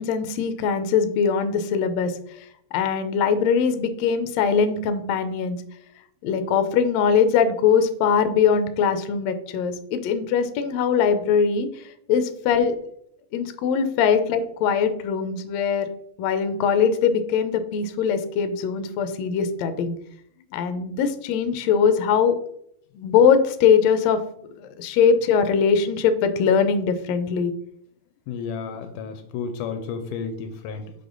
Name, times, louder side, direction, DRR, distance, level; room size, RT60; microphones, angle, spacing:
voice 1, 0.0-2.4 2.7-5.6 6.2-12.7 13.3-15.9 16.2-19.9 20.5-22.3 23.0-24.2 24.6-27.5, left 6 dB, 75° left, 9 dB, 1.7 m, -21 dB
voice 2, 28.3-30.9, left 5 dB, 90° left, 7 dB, 2.2 m, -32 dB
6.4 x 5.3 x 3.9 m, 0.68 s
omnidirectional pair, 3.6 m